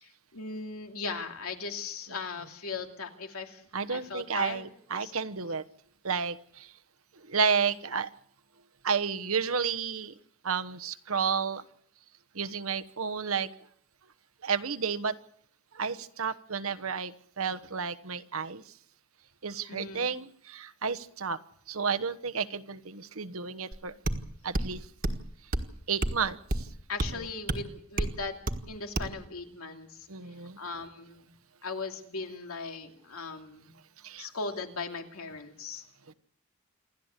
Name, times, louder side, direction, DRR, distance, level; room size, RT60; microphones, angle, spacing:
voice 1, 0.0-4.7 5.0-5.1 19.7-20.1 26.9-28.3 28.7-30.1 30.6-31.3 31.6-33.7 34.2-35.8, left 4 dB, 85° left, 4 dB, 2.7 m, -38 dB
voice 2, 3.7-5.6 6.0-6.7 7.2-8.1 8.8-10.1 10.4-11.6 12.3-13.5 14.4-15.1 15.7-18.6 19.4-21.4 21.7-23.9 24.4-24.8 25.9-26.7 30.1-30.6 34.0-34.3 36.1-36.2, right 6 dB, 75° right, 11 dB, 1.2 m, -31 dB
sound 1, 23.7-23.8 24.1-24.2 24.5-24.7 25.0-25.2 25.5-25.7 26.0-26.2 26.5-26.7 27.0-27.1 27.5-27.6 28.0-28.1 28.5-28.6 29.0-29.1, right 1 dB, 40° right, 1.6 m, -29 dB
28.0 x 12.5 x 8.3 m, 0.65 s
head